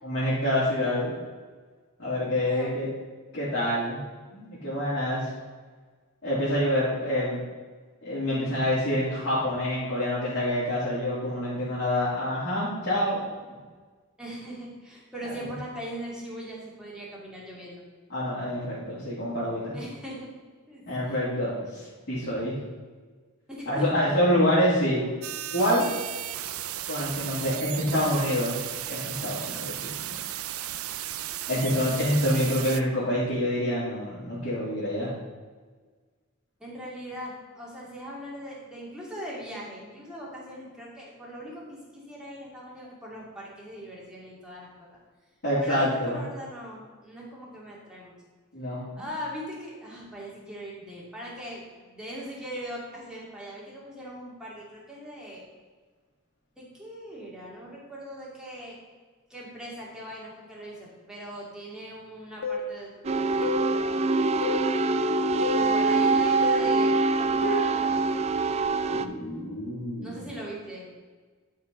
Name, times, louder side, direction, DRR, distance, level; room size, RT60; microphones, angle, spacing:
voice 1, 0.0-1.1 2.0-2.9 3.3-4.0 4.3-5.3 6.2-7.4 8.0-13.2 18.1-19.7 20.9-22.6 23.7-25.0 25.5-25.9 26.9-28.6 28.9-30.2 31.5-35.1 45.4-46.2 48.5-48.8 68.9-70.2, equal, 55° left, -11 dB, 3.1 m, -27 dB
voice 2, 2.4-2.7 14.2-17.8 19.7-20.3 20.7-21.2 23.5-24.1 31.5-31.9 36.6-44.9 45.6-48.1 49.0-55.5 56.6-58.8 59.3-64.2 65.5-68.1 70.0-70.9, equal, 5° right, -5 dB, 2.5 m, -40 dB
sound 1, 25.2-32.8, right 12 dB, 90° right, 0.5 m, -35 dB
sound 2, 62.4-62.7 63.4-63.7 64.4-64.7 65.4-65.7 66.4-66.7 67.4-67.7, left 2 dB, 85° left, 0.8 m, -29 dB
sound 3, 63.0-69.1, right 3 dB, 30° right, 0.4 m, -24 dB
11.5 x 4.9 x 5.4 m, 1.4 s
head